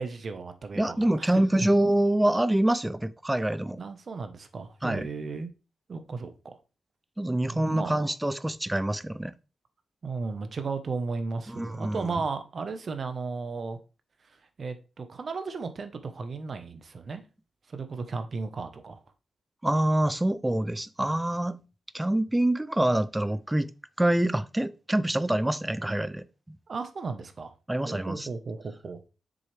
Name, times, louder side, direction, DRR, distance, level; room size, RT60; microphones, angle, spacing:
voice 1, 0.0-1.3 1.6-1.7 3.8-5.5 5.9-6.3 7.5-7.9 10.0-13.8 14.6-17.2 17.7-19.0 26.7-27.5 27.9-29.1, right 4 dB, 45° right, 1.1 m, -35 dB
voice 2, 0.8-3.8 4.8-5.1 7.2-9.3 11.5-12.1 19.6-21.6 21.9-23.7 24.0-26.6 27.7-28.3, right 1 dB, 10° right, 0.5 m, -26 dB
7.6 x 6.4 x 3.4 m
cardioid pair, 120°, 0 cm